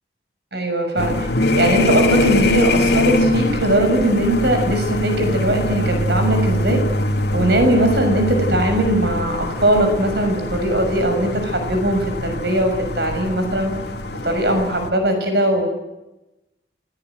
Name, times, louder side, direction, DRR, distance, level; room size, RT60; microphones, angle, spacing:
voice 1, 0.5-1.3 1.6-6.8 7.3-13.7 14.2-15.7, right 1 dB, 65° right, 6 dB, 6.3 m, -19 dB
sound 1, 1.0-14.9, left 1 dB, 60° left, 2.6 m, -22 dB
29.0 x 17.5 x 9.3 m, 1.0 s
head